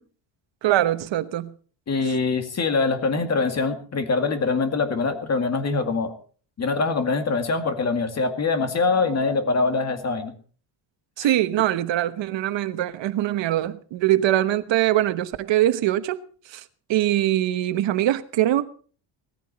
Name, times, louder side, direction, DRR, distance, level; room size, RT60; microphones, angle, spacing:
voice 1, 0.6-1.5 11.2-16.2 16.5-16.6 16.9-18.6, right 13 dB, 65° right, 1.2 m, -22 dB
voice 2, 1.9-6.1 6.6-10.4, left 4 dB, 35° left, 2.2 m, -23 dB
18.5 x 14.5 x 4.3 m
cardioid pair, 160°, 47 cm